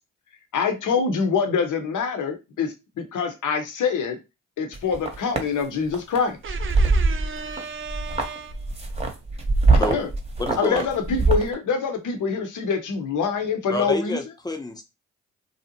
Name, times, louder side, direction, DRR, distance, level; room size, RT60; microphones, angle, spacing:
voice 1, 0.5-4.2 4.6-6.5 9.7-10.1 10.6-14.2, left 5 dB, 55° left, 0.8 m, -25 dB
sound 1, 4.7-5.4 5.9-6.2 6.5-7.6 7.9-11.5, right 3 dB, 15° right, 0.9 m, -22 dB
voice 2, 6.4-8.6, right 6 dB, 35° right, 0.5 m, -35 dB
voice 3, 10.4-10.9 13.7-14.8, left 2 dB, 10° left, 0.7 m, -28 dB
2.6 x 2.0 x 2.8 m
hypercardioid pair, 40°, 36 cm